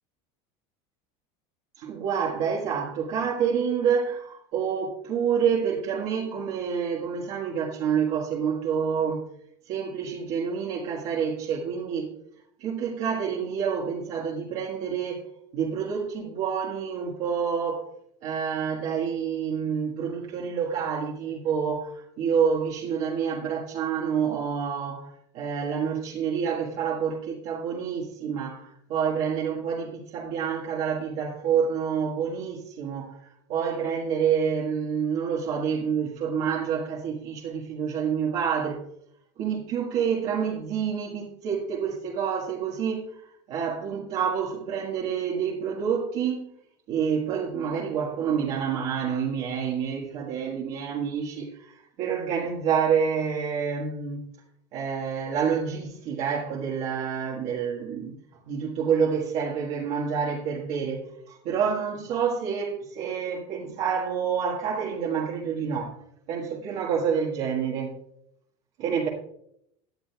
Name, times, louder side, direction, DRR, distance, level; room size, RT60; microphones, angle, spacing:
voice 1, 1.8-9.3 9.7-12.1 12.6-15.3 15.5-17.9 18.2-38.8 39.4-43.2 43.5-46.5 46.9-54.2 54.7-58.1 58.5-66.0 66.3-68.0 68.8-69.1, right 7 dB, 50° right, 1.5 m, -28 dB
17.5 x 10.0 x 2.3 m
cardioid pair, 160°, 15 cm